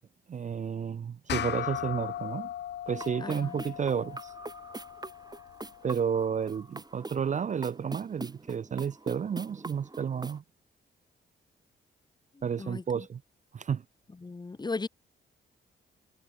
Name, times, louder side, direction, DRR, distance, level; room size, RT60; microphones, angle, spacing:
voice 1, 0.3-2.5 2.9-4.3 5.8-10.4 12.4-13.2 13.5-13.8, right 7 dB, 35° right, 0.4 m, -31 dB
sound 1, 1.3-6.1, left 11 dB, 55° left, 0.4 m, -38 dB
sound 2, 2.9-10.4, right 2 dB, 20° right, 3.5 m, -44 dB
voice 2, 3.2-3.5 12.6-13.0 14.2-14.9, left 3 dB, 20° left, 0.6 m, -36 dB
cardioid pair, 65°, 21 cm